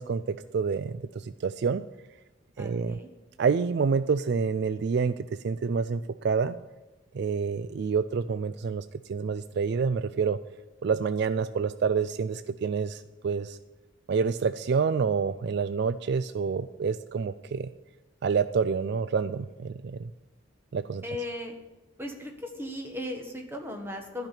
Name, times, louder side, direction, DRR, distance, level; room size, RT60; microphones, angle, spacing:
voice 1, 0.0-1.8 2.6-3.0 3.4-6.5 7.1-10.4 10.8-13.6 14.1-17.7 18.2-20.1 20.7-21.0, right 5 dB, 55° right, 13 dB, 0.3 m, -28 dB
voice 2, 2.6-3.1 21.0-21.6 22.0-24.3, left 1 dB, 10° right, 3 dB, 1.5 m, -37 dB
12.0 x 5.9 x 9.0 m, 1.1 s
head